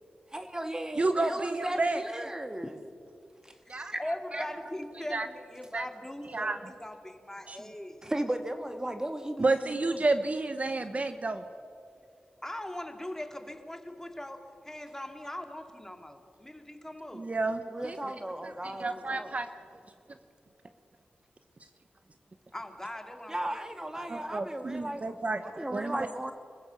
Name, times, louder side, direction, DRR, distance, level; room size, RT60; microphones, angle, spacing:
voice 1, 0.3-2.7 3.4-4.0 4.3-4.5 8.0-10.0 17.7-19.3 23.3-25.0 25.4-26.3, right 1 dB, 20° right, 7 dB, 1.7 m, -36 dB
voice 2, 1.0-2.0 3.7-3.9 5.1-5.3 5.7-5.9 6.3-6.6 7.5-7.6 9.4-11.4 17.1-18.0 18.4-19.5 24.1-25.4 25.7-26.1, right 3 dB, 45° right, 9 dB, 1.0 m, -30 dB
voice 3, 3.9-8.1 12.4-17.3 22.5-24.1, left 1 dB, 15° left, 5 dB, 2.5 m, -41 dB
25.5 x 15.0 x 7.0 m, 2.5 s
cardioid pair, 55°, 3 cm